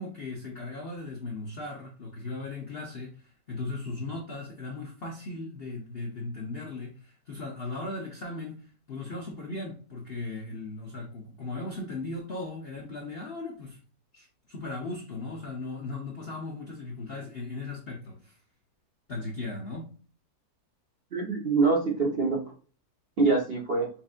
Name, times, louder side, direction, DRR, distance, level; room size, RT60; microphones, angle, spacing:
voice 1, 0.0-13.8 14.1-18.4 19.1-19.9, left 2 dB, 60° left, 0.6 m, -37 dB
voice 2, 21.1-22.4 23.2-23.9, right 4 dB, 45° right, 0.8 m, -24 dB
5.7 x 2.5 x 2.4 m
omnidirectional pair, 1.9 m